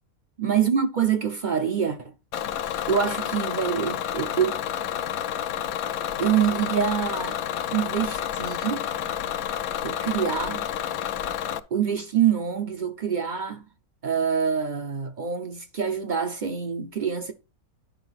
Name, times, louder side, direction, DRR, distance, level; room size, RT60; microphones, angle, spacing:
voice 1, 0.4-2.1 2.9-4.6 6.2-7.4 7.7-8.8 9.8-10.7 11.7-13.6 14.0-17.3, right 8 dB, 55° right, 0.5 m, -25 dB
Bus / Engine, 2.3-11.6, left 10 dB, 75° left, 1.0 m, -30 dB
10.5 x 4.8 x 4.0 m
omnidirectional pair, 1.6 m